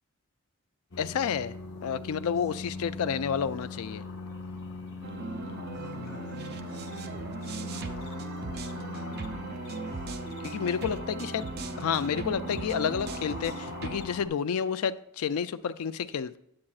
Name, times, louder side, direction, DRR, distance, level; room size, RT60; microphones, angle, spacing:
sound 1, 0.9-14.3, left 2 dB, 50° left, 0.8 m, -40 dB
voice 1, 1.0-1.5 1.8-4.0 10.4-16.4, left 7 dB, 80° left, 0.4 m, -30 dB
sound 2, 5.0-14.1, right 3 dB, 45° right, 0.5 m, -39 dB
8.6 x 8.5 x 2.4 m
head